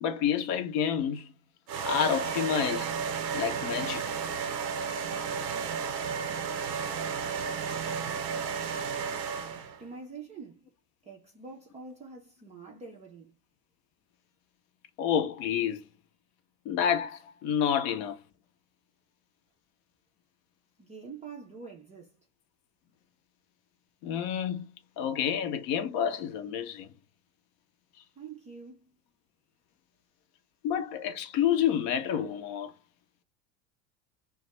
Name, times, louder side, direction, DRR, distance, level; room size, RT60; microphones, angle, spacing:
voice 1, 0.0-1.3 1.8-2.9 3.3-4.0 15.0-15.8 16.7-18.2 24.0-24.7 25.0-26.9 30.6-32.7, left 9 dB, 50° left, 0.6 m, -29 dB
sound 1, 1.7-9.8, right 6 dB, 85° right, 0.6 m, -33 dB
voice 2, 9.5-10.7 11.0-13.4 20.8-22.1 28.2-28.9, right 4 dB, 15° right, 0.3 m, -46 dB
2.3 x 2.2 x 2.9 m
hypercardioid pair, 90°, 50 cm